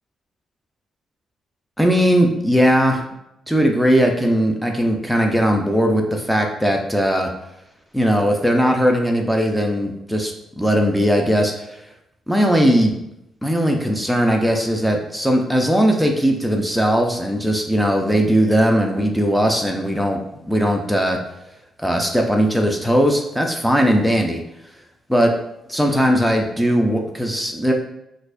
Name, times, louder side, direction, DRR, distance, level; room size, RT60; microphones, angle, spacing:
voice 1, 1.8-3.0 3.5-7.3 7.9-11.8 12.3-12.9 13.4-20.2 20.5-21.2 21.8-24.4 25.1-25.3 25.7-27.7, equal, ahead, 2 dB, 0.5 m, -18 dB
4.1 x 2.5 x 2.5 m, 0.83 s
supercardioid pair, 55°, 0 cm